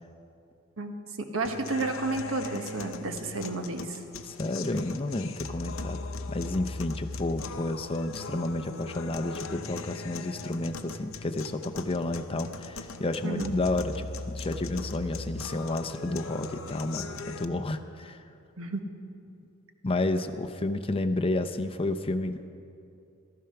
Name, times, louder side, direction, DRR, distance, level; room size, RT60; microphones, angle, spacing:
voice 1, 0.8-4.0 13.2-13.5 18.6-18.8, right 3 dB, 65° right, 5 dB, 1.3 m, -32 dB
sound 1, 1.4-17.4, left 3 dB, 65° left, 0.7 m, -39 dB
voice 2, 4.2-6.0 6.3-18.2 19.8-22.4, left 2 dB, 25° left, 7 dB, 0.6 m, -31 dB
14.5 x 13.5 x 5.8 m, 2.6 s
head